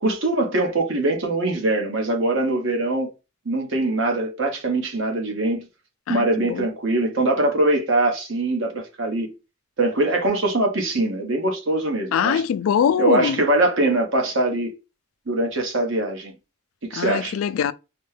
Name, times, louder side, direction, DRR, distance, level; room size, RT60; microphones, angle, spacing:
voice 1, 0.0-3.1 3.4-5.7 6.1-9.3 9.8-12.4 13.0-14.7 15.3-16.3 16.9-17.4, right 2 dB, 65° right, 1.1 m, -22 dB
voice 2, 6.1-6.7 12.1-13.4 16.9-17.7, left 8 dB, 85° left, 0.3 m, -22 dB
4.2 x 2.2 x 3.3 m
head